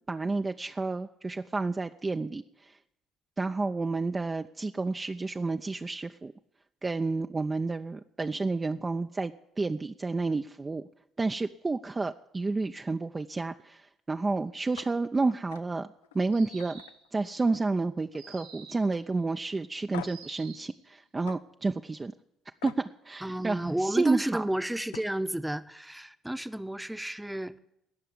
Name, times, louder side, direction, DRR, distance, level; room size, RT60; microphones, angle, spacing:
voice 1, 0.1-2.8 3.4-6.3 6.8-10.8 11.2-15.9 16.1-16.8 17.1-22.1 22.6-24.4, right 3 dB, 25° right, 0.6 m, -30 dB
sound 1, 14.7-14.9 15.3-15.6 16.0-16.2 16.6-17.8 18.1-18.5 18.9-19.0 19.9-20.3 21.3-21.4 22.6-22.8 24.5-24.6 24.9-25.2, left 13 dB, 80° left, 0.5 m, -45 dB
sound 2, 16.3-17.1 18.2-18.9 20.0-20.7, right 5 dB, 85° right, 2.6 m, -49 dB
voice 2, 23.2-27.6, right 1 dB, 5° right, 0.9 m, -32 dB
18.5 x 6.7 x 9.7 m
figure-of-eight pair, 50°, 0 cm